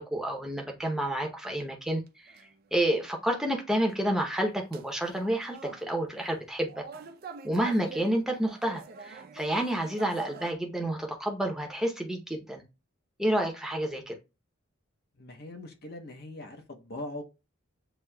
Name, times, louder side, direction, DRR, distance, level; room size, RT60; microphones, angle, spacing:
voice 1, 0.0-6.8 7.4-12.6 13.2-14.2, right 1 dB, ahead, 0.7 m, -30 dB
sound 1, 1.5-1.6 2.1-2.7 3.7-3.8 4.7-5.9 6.7-10.5, right 4 dB, 45° right, 0.5 m, -45 dB
voice 2, 15.1-17.2, left 1 dB, 50° left, 0.7 m, -41 dB
7.7 x 2.7 x 2.2 m
head